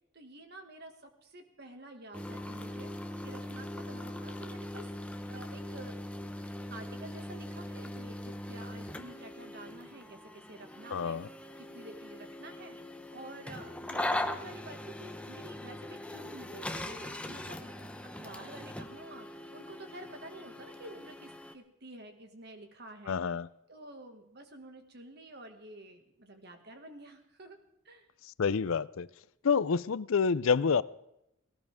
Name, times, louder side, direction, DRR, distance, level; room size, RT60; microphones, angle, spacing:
voice 1, 0.1-2.9 3.2-4.9 5.3-6.0 6.7-11.2 11.6-12.8 13.1-23.2 23.7-27.6 27.8-28.1, right 1 dB, 50° right, 5 dB, 2.0 m, -49 dB
sound 1, 2.1-21.5, left 1 dB, 5° left, 0.8 m, -41 dB
voice 2, 10.9-11.3 23.1-23.5 28.4-29.1 29.4-30.8, left 5 dB, 75° left, 18 dB, 0.5 m, -28 dB
18.5 x 18.0 x 3.6 m, 0.81 s
head